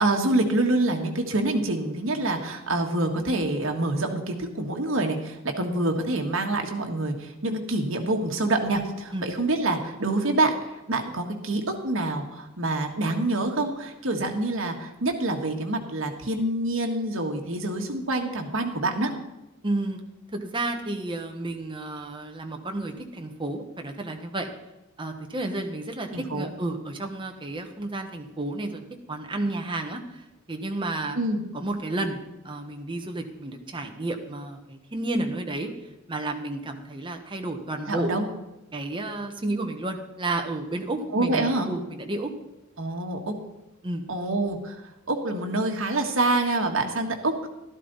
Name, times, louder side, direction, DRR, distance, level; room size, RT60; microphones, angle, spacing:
voice 1, 0.0-19.1 26.1-26.5 31.1-31.4 37.9-38.3 41.1-41.7 42.8-43.3 44.1-44.8 45.1-47.5, right 2 dB, 70° right, 3 dB, 1.6 m, -26 dB
voice 2, 19.6-20.0 20.3-24.5 25.0-28.8 29.1-30.2 30.5-31.2 31.5-32.2 32.4-35.7 36.1-38.1 38.7-42.3 43.8-44.0, right 2 dB, 25° right, 4 dB, 1.2 m, -31 dB
12.5 x 12.0 x 4.1 m, 1.0 s
head